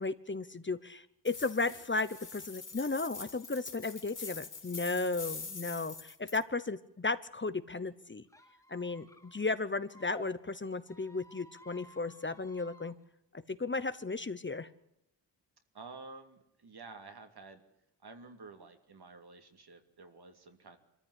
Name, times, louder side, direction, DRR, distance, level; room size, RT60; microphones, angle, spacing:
voice 1, 0.0-8.2 8.7-12.9 13.5-14.7, left 3 dB, 25° left, 14 dB, 0.9 m, -35 dB
sound 1, 1.3-6.4, left 4 dB, 45° left, 3.6 m, -45 dB
Squeak, 8.3-10.3 10.8-12.9, left 1 dB, 10° left, 2.4 m, -55 dB
voice 2, 15.7-17.6 18.0-20.8, right 3 dB, 65° right, 6 dB, 2.9 m, -51 dB
25.0 x 14.5 x 10.0 m, 0.83 s
wide cardioid pair, 125°, 41 cm